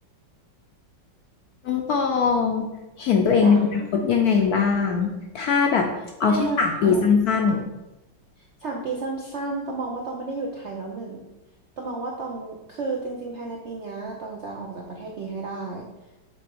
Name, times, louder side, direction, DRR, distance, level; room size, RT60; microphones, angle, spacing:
voice 1, 1.6-2.7 3.0-5.9 6.2-7.6, left 5 dB, 70° left, 3 dB, 0.9 m, -21 dB
voice 2, 3.4-3.9 4.3-4.4 6.2-7.1 8.4-11.3 11.8-15.9, right 3 dB, 65° right, -1 dB, 0.7 m, -32 dB
5.9 x 4.0 x 4.6 m, 0.99 s
omnidirectional pair, 2.1 m